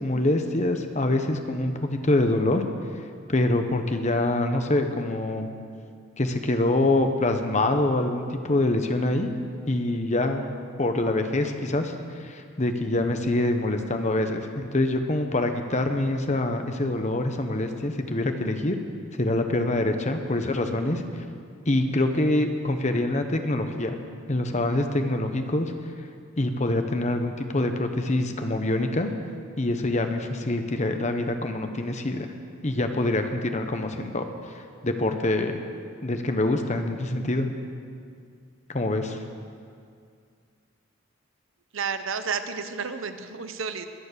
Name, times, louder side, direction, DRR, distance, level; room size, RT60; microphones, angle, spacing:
voice 1, 0.0-2.6 3.3-5.5 6.2-9.3 9.7-10.4 10.8-18.8 19.1-21.0 21.7-23.9 24.3-25.7 26.4-29.1 29.6-32.3 32.6-34.2 34.5-35.5 36.0-37.5 38.7-39.2, left 2 dB, 35° left, 6 dB, 0.9 m, -25 dB
voice 2, 41.7-43.9, right 5 dB, 65° right, 9 dB, 0.8 m, -31 dB
21.0 x 7.1 x 6.8 m, 2.2 s
head